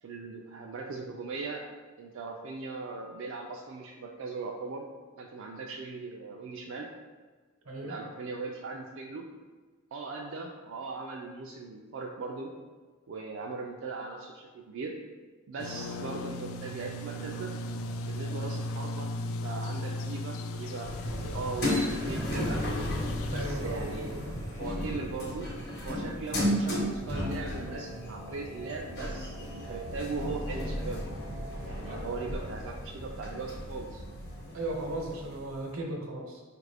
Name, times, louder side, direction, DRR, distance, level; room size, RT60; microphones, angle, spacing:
voice 1, 0.0-1.6 2.0-4.9 5.2-6.9 7.8-9.3 9.9-12.5 13.1-15.0 15.5-17.5 18.1-19.1 19.4-22.6 23.3-25.5 25.8-31.1 31.6-34.0, right 4 dB, 60° right, 0 dB, 0.3 m, -39 dB
sound 1, 15.6-23.4, left 1 dB, 75° left, 0.3 m, -36 dB
sound 2, 20.8-35.6, equal, 50° left, 0.9 m, -34 dB
voice 2, 23.3-23.8 31.9-32.0 34.5-36.4, right 1 dB, 90° right, 0 dB, 0.9 m, -36 dB
sound 3, 26.7-32.2, left 1 dB, 20° left, 0.5 m, -48 dB
4.7 x 2.5 x 3.3 m, 1.4 s
head